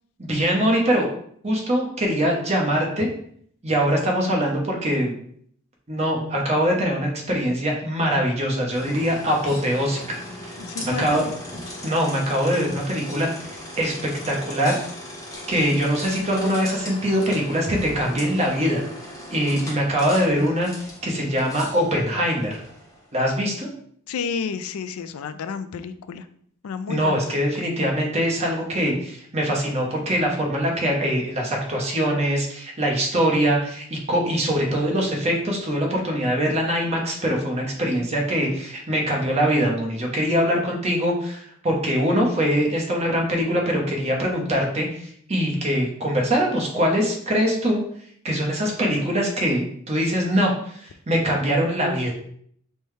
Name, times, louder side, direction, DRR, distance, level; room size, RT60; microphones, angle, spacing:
voice 1, 0.2-1.1 1.4-3.1 3.6-5.1 5.9-11.2 11.8-14.8 15.5-18.8 19.3-20.7 21.0-22.6 23.1-23.7 26.9-47.8 48.2-52.1, equal, 30° right, 0 dB, 0.9 m, -23 dB
sound 1, 8.7-23.1, left 1 dB, 15° left, 0.8 m, -38 dB
voice 2, 10.6-11.3 24.1-26.2 26.6-27.2 27.6-27.7, left 6 dB, 85° left, 12 dB, 0.4 m, -31 dB
5.4 x 2.2 x 3.2 m, 0.63 s
head